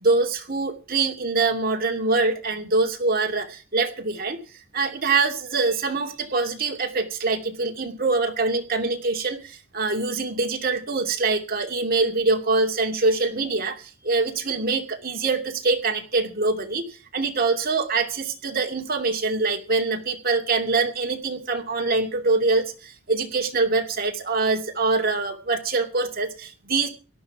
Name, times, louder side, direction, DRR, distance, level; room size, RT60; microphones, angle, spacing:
voice 1, 0.0-4.4 4.7-13.7 14.0-16.9 17.1-26.9, right 3 dB, 45° right, 2 dB, 2.6 m, -24 dB
17.5 x 12.5 x 4.8 m, 0.37 s
head